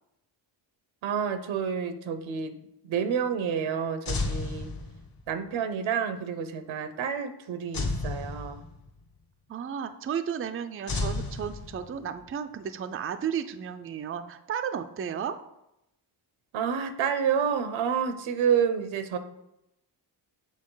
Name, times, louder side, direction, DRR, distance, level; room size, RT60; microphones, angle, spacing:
voice 1, 1.0-2.6 2.8-4.7 5.3-8.7 16.5-19.2, right 7 dB, 85° right, 9 dB, 0.9 m, -29 dB
sound 1, 4.1-5.3 7.7-9.0 10.9-12.2, left 3 dB, 50° left, 1.2 m, -32 dB
voice 2, 9.5-15.4, right 8 dB, 30° right, 9 dB, 0.4 m, -33 dB
7.4 x 4.4 x 3.9 m, 0.85 s
cardioid pair, 100°, 46 cm